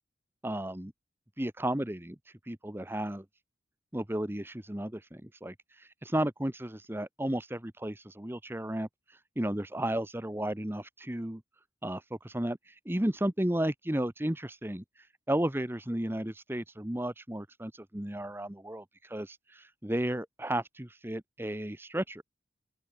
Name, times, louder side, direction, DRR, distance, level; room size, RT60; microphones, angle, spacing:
voice 1, 0.4-0.9 1.4-3.2 3.9-11.4 11.8-22.2, right 1 dB, 10° right, 1.0 m, -34 dB
open air
head